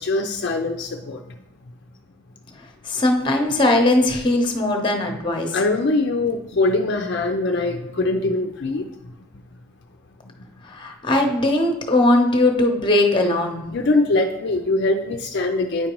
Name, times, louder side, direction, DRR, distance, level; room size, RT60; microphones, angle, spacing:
voice 1, 0.0-1.4 5.5-8.9 13.7-15.9, left 2 dB, 55° left, 3 dB, 0.5 m, -22 dB
voice 2, 2.9-5.5 10.7-13.6, left 1 dB, 25° left, 3 dB, 0.8 m, -19 dB
9.3 x 5.1 x 3.0 m, 0.88 s
head